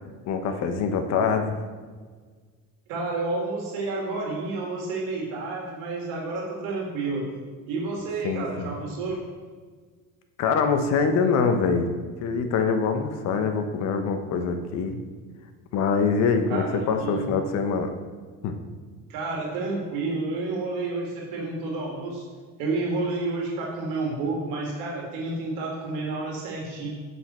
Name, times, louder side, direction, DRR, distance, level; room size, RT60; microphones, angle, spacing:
voice 1, 0.0-1.6 8.2-8.7 10.4-11.9 12.2-15.0 15.7-17.9 18.4-18.6, left 5 dB, 55° left, 6 dB, 0.9 m, -24 dB
voice 2, 2.9-7.3 7.7-9.2 16.5-17.3 19.1-22.2 22.6-26.9, right 3 dB, 85° right, -1 dB, 2.0 m, -30 dB
7.9 x 5.4 x 4.3 m, 1.5 s
cardioid pair, 150°, 32 cm